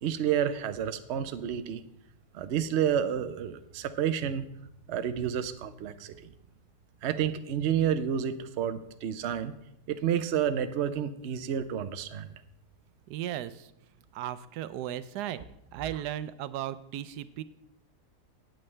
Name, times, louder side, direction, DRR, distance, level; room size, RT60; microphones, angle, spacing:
voice 1, 0.0-1.8 2.3-4.4 4.9-6.3 7.0-9.5 9.9-12.3, right 9 dB, 60° right, 10 dB, 0.7 m, -30 dB
voice 2, 13.1-13.7 14.1-15.4 15.7-17.4, right 12 dB, 80° right, 14 dB, 1.1 m, -36 dB
14.0 x 9.0 x 3.3 m, 0.79 s
omnidirectional pair, 1.7 m